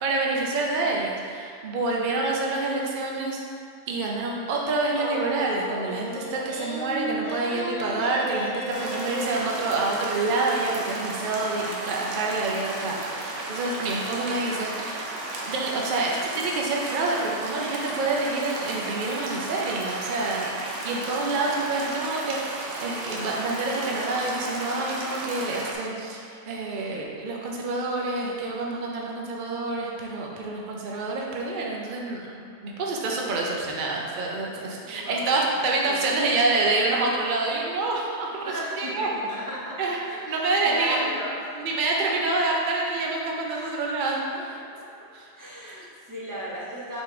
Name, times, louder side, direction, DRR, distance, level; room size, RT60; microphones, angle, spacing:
voice 1, 0.0-3.4 3.9-15.1 15.4-38.4 38.8-39.1 39.8-40.0 40.3-41.1 41.6-44.2 45.1-45.3, right 3 dB, 50° right, -2 dB, 0.8 m, -27 dB
sound 1, 4.9-9.4, right 1 dB, 90° left, 1.9 m, -34 dB
sound 2, 8.7-25.7, right 2 dB, 80° right, 1.1 m, -34 dB
voice 2, 34.8-36.2 38.4-40.3 40.6-41.7 43.5-43.8 44.3-45.1 45.4-47.0, equal, 15° right, -6 dB, 1.0 m, -36 dB
6.4 x 3.3 x 4.8 m, 2.4 s
omnidirectional pair, 1.3 m